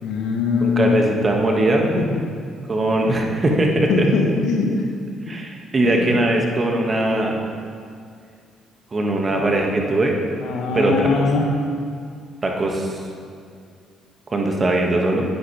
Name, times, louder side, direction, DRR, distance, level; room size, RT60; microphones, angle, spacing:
voice 1, 0.0-1.0 2.0-2.2 3.0-3.2 3.9-4.9 5.3-5.4 5.8-6.2 6.7-6.8 9.3-9.7 10.4-11.5, left 4 dB, 60° left, 1 dB, 2.0 m, -22 dB
voice 2, 0.6-1.8 2.7-4.0 5.3-7.4 8.9-10.2 10.7-11.2 12.4-13.0 14.3-15.3, right 2 dB, 30° right, 0 dB, 2.4 m, -20 dB
22.0 x 11.0 x 3.7 m, 2.3 s
figure-of-eight pair, 45°, 0 cm